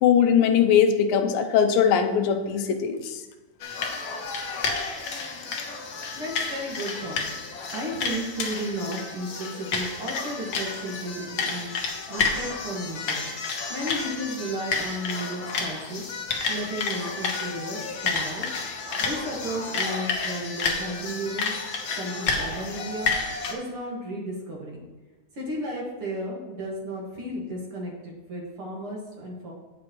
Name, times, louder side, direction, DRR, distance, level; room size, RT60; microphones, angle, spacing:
voice 1, 0.0-3.0, left 8 dB, 90° left, 7 dB, 2.4 m, -20 dB
sound 1, 3.6-23.5, left 4 dB, 75° left, 1.1 m, -30 dB
voice 2, 6.2-7.3 7.7-13.2 13.7-16.0 16.5-18.5 19.0-21.6 22.0-23.1 23.5-24.8 25.3-29.5, right 1 dB, 45° right, -3 dB, 2.2 m, -33 dB
16.5 x 6.0 x 3.1 m, 1.2 s
omnidirectional pair, 4.0 m